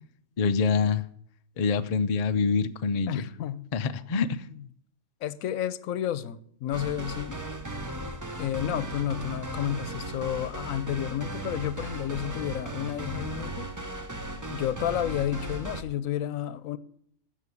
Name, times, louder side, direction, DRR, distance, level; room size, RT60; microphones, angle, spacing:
voice 1, 0.4-1.0 1.6-3.3 3.7-4.4, left 5 dB, 45° left, 0.5 m, -25 dB
voice 2, 3.1-3.7 4.1-4.3 5.2-7.4 8.4-13.7 14.5-16.8, left 11 dB, 85° left, 1.1 m, -31 dB
sound 1, 6.7-15.8, right 1 dB, 15° right, 0.8 m, -36 dB
13.0 x 7.5 x 7.1 m
omnidirectional pair, 1.4 m